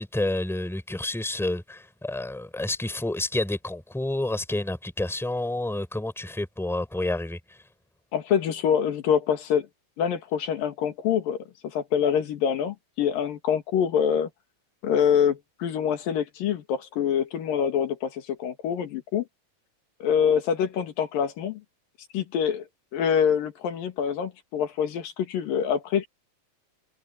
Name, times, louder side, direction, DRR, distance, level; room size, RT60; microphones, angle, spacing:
voice 1, 0.0-7.4, left 2 dB, ahead, 4.9 m, -29 dB
voice 2, 8.1-9.7 10.0-11.4 11.6-14.3 14.8-19.3 20.0-21.6 22.1-22.6 22.9-26.1, left 8 dB, 85° left, 3.8 m, -25 dB
omnidirectional pair, 3.9 m